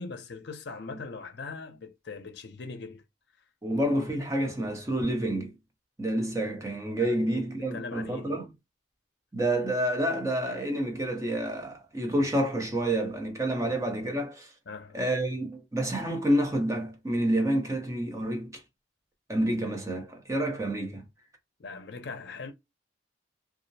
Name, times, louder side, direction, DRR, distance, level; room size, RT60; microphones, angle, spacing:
voice 1, 0.0-3.0 3.7-3.8 6.9-8.4 13.6-13.7 14.7-15.0 21.6-22.5, left 4 dB, 60° left, 0.6 m, -41 dB
voice 2, 3.6-5.5 6.0-8.5 9.3-14.5 14.9-18.6 19.3-21.0, right 1 dB, 15° right, 0.6 m, -28 dB
2.3 x 2.0 x 2.6 m
head